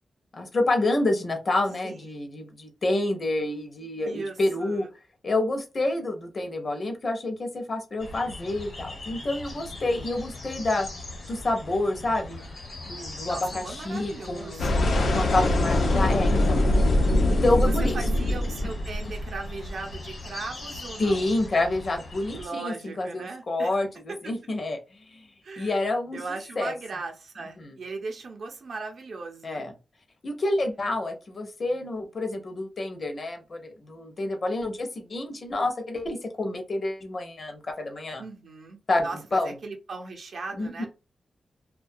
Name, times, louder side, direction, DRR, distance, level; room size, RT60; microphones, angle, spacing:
voice 1, 0.3-4.8 5.2-10.9 11.3-12.4 12.9-16.6 17.3-18.0 21.0-25.3 25.6-26.2 26.6-26.7 27.6-27.8 29.4-29.7 30.2-38.2 38.9-39.6 40.6-40.9, left 2 dB, 40° left, 0.6 m, -28 dB
voice 2, 1.8-2.2 4.0-4.9 13.3-14.9 17.6-21.3 22.4-23.8 24.2-24.3 25.4-25.8 26.1-29.6 38.2-40.9, right 3 dB, 70° right, 0.6 m, -38 dB
sound 1, 8.0-22.5, left 2 dB, 70° left, 1.0 m, -41 dB
sound 2, 14.6-19.7, left 1 dB, 90° left, 0.5 m, -23 dB
2.2 x 2.2 x 2.5 m
wide cardioid pair, 145°, 0 cm